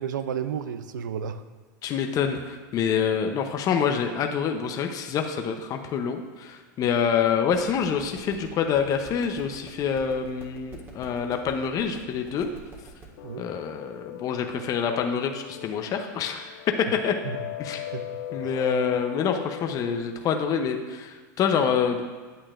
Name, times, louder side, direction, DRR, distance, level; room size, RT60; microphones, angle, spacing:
voice 1, 0.0-1.4 13.2-13.5 17.2-17.4 17.9-18.5, right 8 dB, 85° right, 11 dB, 0.5 m, -32 dB
voice 2, 1.8-12.5 13.4-17.1 17.6-17.9 18.3-22.0, left 7 dB, 35° left, 5 dB, 0.7 m, -26 dB
sound 1, 7.5-13.0, right 3 dB, 25° right, 1.6 m, -47 dB
sound 2, 13.2-20.0, left 12 dB, 65° left, 0.4 m, -40 dB
9.0 x 8.3 x 2.5 m, 1.4 s
hypercardioid pair, 110°, 10 cm